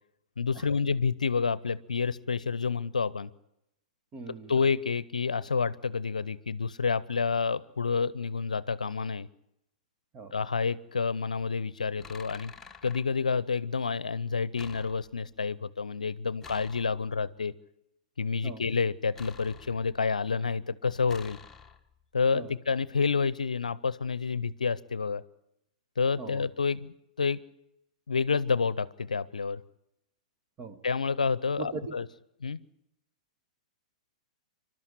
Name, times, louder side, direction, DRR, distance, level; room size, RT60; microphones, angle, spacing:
voice 1, 0.4-3.3 4.5-9.3 10.3-12.5 12.8-17.5 18.2-21.4 22.1-25.2 26.0-27.4 28.1-29.6 30.8-32.1 32.4-32.6, left 5 dB, 75° left, 19 dB, 0.7 m, -29 dB
voice 2, 4.1-4.5 10.1-10.3 18.4-18.6 22.3-22.5 26.2-26.4 30.6-30.8 31.6-31.9, right 3 dB, 25° right, 8 dB, 1.8 m, -39 dB
sound 1, 12.0-13.0 14.6-15.3 16.4-17.3 19.1-20.1 21.1-22.0, left 5 dB, 10° left, 1.5 m, -49 dB
26.5 x 12.5 x 9.7 m, 0.83 s
figure-of-eight pair, 105°, 4 cm